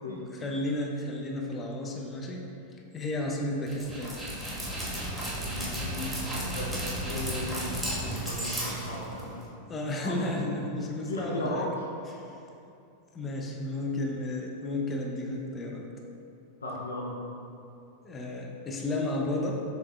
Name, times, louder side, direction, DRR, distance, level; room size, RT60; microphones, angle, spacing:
voice 1, 0.0-2.5 2.9-4.2 9.7-11.7 12.1-12.3 13.1-15.9 18.0-19.6, left 1 dB, 20° left, 0 dB, 0.4 m, -33 dB
Dog, 3.7-9.5, right 1 dB, 5° right, 1.0 m, -34 dB
voice 2, 5.5-7.7 8.1-9.3 10.0-10.1 11.1-11.9 16.6-17.2, left 1 dB, 75° left, -3 dB, 0.5 m, -36 dB
4.8 x 3.5 x 2.3 m, 2.7 s
figure-of-eight pair, 90°, 0 cm